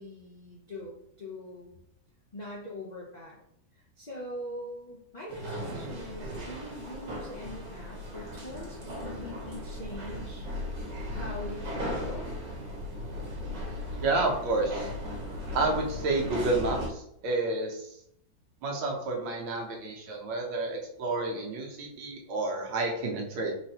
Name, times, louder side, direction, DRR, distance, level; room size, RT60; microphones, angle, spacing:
voice 1, 0.0-1.8 2.3-3.4 3.7-10.5 11.1-12.3, left 1 dB, 75° left, -4 dB, 0.4 m, -42 dB
sound 1, 5.3-16.9, equal, 65° right, 1.7 m, -37 dB
voice 2, 13.9-14.9 15.5-17.9 18.6-23.5, right 2 dB, 80° right, 0 dB, 1.7 m, -30 dB
4.3 x 4.0 x 2.9 m, 0.74 s
omnidirectional pair, 2.1 m